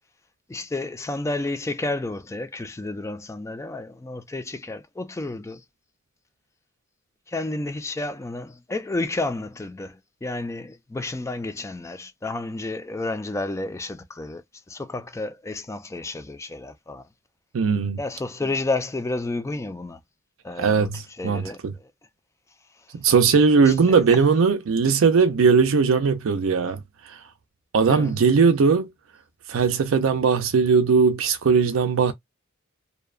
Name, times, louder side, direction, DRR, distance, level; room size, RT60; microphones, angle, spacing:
voice 1, 0.5-5.6 7.3-17.1 18.0-20.0 20.4-20.9 21.2-21.9 23.5-24.2 27.8-28.1, left 2 dB, 15° left, 0.3 m, -31 dB
voice 2, 17.5-18.0 20.6-21.7 23.0-26.8 27.1-27.2 27.7-28.9 29.5-32.1, right 5 dB, 85° right, 0.4 m, -19 dB
2.7 x 2.1 x 2.3 m
head